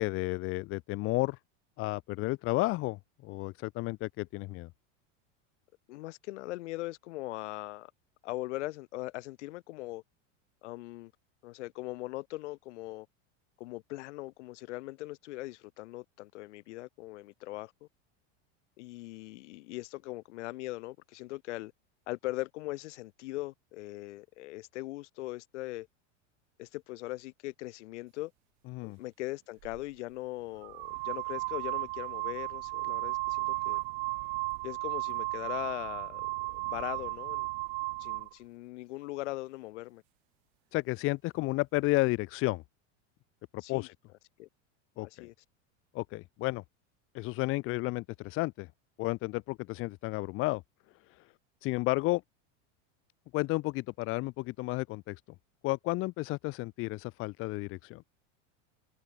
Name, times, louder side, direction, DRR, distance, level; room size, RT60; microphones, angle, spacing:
voice 1, 0.0-1.4 1.8-4.7 28.7-29.0 40.7-42.6 43.5-43.9 45.0-45.3 45.9-46.6 47.1-48.7 49.0-50.6 51.1-51.2 51.6-52.2 53.3-55.2 55.6-58.0, left 21 dB, 35° left, 1.4 m, -32 dB
voice 2, 5.9-7.9 8.2-10.0 10.6-11.1 11.4-13.1 13.6-17.9 18.8-21.7 22.1-25.9 26.6-28.3 28.8-33.8 34.6-36.3 36.5-37.5 38.0-40.0 43.6-43.9 44.4-44.5 45.0-45.3, left 19 dB, 70° left, 5.7 m, -40 dB
sound 1, 29.6-29.8 30.6-38.3, right 26 dB, 55° right, 2.5 m, -35 dB
supercardioid pair, 170°, 37 cm